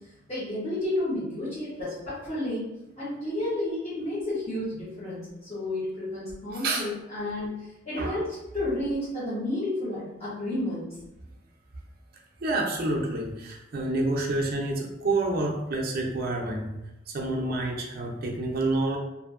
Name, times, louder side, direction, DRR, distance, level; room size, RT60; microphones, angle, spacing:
voice 1, 0.3-2.6 3.0-8.3 8.5-11.0, left 1 dB, 30° left, -13 dB, 1.0 m, -31 dB
voice 2, 6.5-6.8 8.0-8.2 12.4-16.7 17.1-19.0, right 2 dB, 50° right, -1 dB, 0.5 m, -28 dB
2.7 x 2.6 x 2.5 m, 0.94 s
head